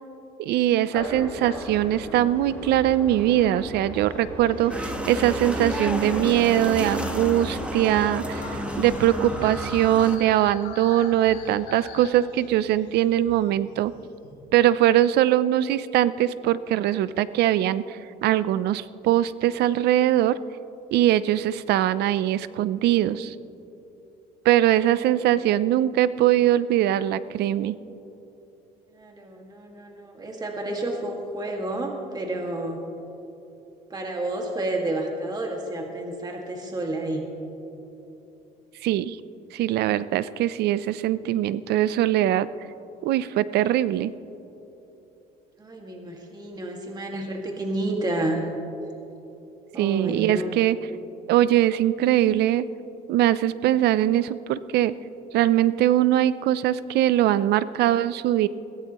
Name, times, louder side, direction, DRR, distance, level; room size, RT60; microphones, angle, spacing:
voice 1, 0.4-13.9 14.5-20.4 20.9-23.3 24.4-27.8 38.8-39.2 39.5-42.5 43.0-44.1 49.8-50.8 51.3-52.7 53.1-54.9 55.3-58.5, right 13 dB, 75° right, 16 dB, 0.5 m, -22 dB
sound 1, 0.9-9.6, left 1 dB, 10° left, 3.9 m, -35 dB
sound 2, 4.7-10.2, equal, 5° right, 1.3 m, -32 dB
sound 3, 7.9-14.3, left 4 dB, 90° left, 4.1 m, -42 dB
voice 2, 28.9-32.8 33.9-37.3 45.6-48.4 49.7-50.6, right 1 dB, 25° right, 1 dB, 2.0 m, -30 dB
22.0 x 16.0 x 3.0 m, 2.9 s
cardioid pair, 110°, 17 cm